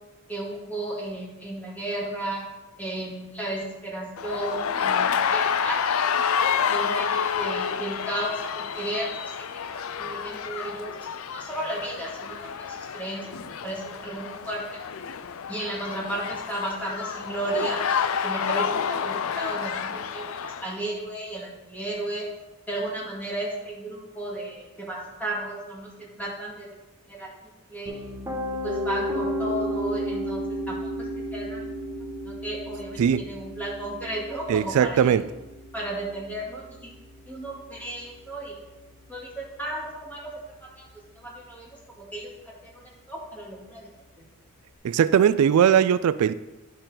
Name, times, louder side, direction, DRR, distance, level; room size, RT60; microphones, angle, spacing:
voice 1, 0.3-2.5 2.8-6.0 6.7-9.5 9.7-13.3 13.6-14.6 15.5-22.3 22.7-26.7 27.1-27.3 27.7-28.0 28.6-31.6 32.2-35.2 35.7-36.9 37.3-38.5 39.1-40.3 40.6-40.9 41.1-41.7 42.0-43.9, right 1 dB, 5° left, -4 dB, 2.2 m, -34 dB
sound 1, 4.2-20.7, left 7 dB, 65° left, 0.5 m, -29 dB
Piano, 27.9-39.8, equal, 10° right, 1.7 m, -34 dB
voice 2, 34.5-35.2 44.8-46.3, right 8 dB, 75° right, 16 dB, 0.3 m, -19 dB
10.5 x 6.6 x 3.9 m, 1.1 s
head